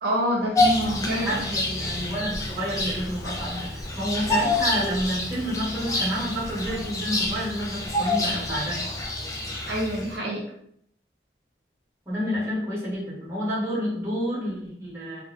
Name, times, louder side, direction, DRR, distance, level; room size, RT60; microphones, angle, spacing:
voice 1, 0.0-1.5 9.7-10.4, equal, 65° right, -2 dB, 0.4 m, -26 dB
Bird vocalization bird call bird song, 0.5-10.2, left 2 dB, 20° left, 0.3 m, -28 dB
voice 2, 1.0-8.8 12.1-15.2, equal, 15° right, -10 dB, 1.0 m, -29 dB
2.4 x 2.0 x 2.5 m, 0.68 s
head